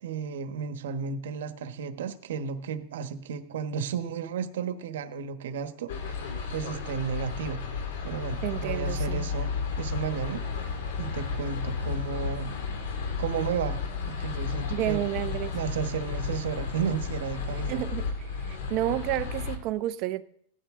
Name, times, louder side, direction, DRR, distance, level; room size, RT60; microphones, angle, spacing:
voice 1, 0.0-6.2 6.5-7.6 8.0-10.4 11.0-12.5 13.2-13.8 14.1-15.0 15.5-17.8, right 7 dB, 90° right, 1.3 m, -33 dB
sound 1, 5.9-19.6, left 5 dB, 85° left, 2.3 m, -33 dB
voice 2, 8.4-9.3 14.7-15.5 17.7-18.0 18.4-20.2, right 14 dB, 40° right, 0.7 m, -30 dB
17.5 x 12.5 x 3.7 m
supercardioid pair, 155°, 0 cm